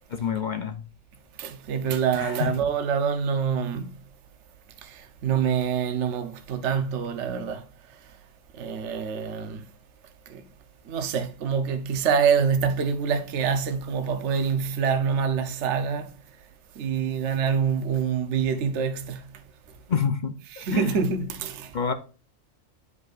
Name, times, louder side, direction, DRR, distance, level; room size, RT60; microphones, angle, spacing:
voice 1, 0.1-0.8 2.1-2.5 19.9-21.0 21.7-21.9, left 7 dB, 45° left, 0.6 m, -28 dB
voice 2, 1.4-4.0 4.8-7.7 8.5-9.6 10.3-10.4 10.9-16.1 16.8-19.3 20.6-21.8, right 6 dB, 60° right, 1.1 m, -26 dB
11.0 x 5.2 x 2.4 m
omnidirectional pair, 1.4 m